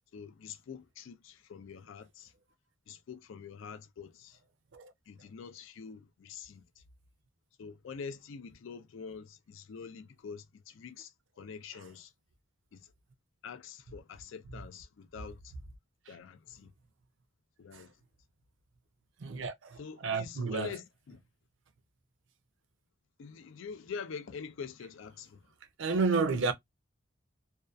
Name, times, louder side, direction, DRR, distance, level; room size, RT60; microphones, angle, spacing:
voice 1, 0.1-2.3 2.9-4.4 5.1-6.8 7.6-12.1 12.7-12.9 13.4-15.5 16.1-16.7 17.6-18.0 19.8-21.2 23.2-25.5, left 6 dB, 70° left, 0.4 m, -45 dB
voice 2, 19.2-20.7 25.8-26.5, right 4 dB, 70° right, 0.5 m, -31 dB
2.6 x 2.2 x 2.2 m
head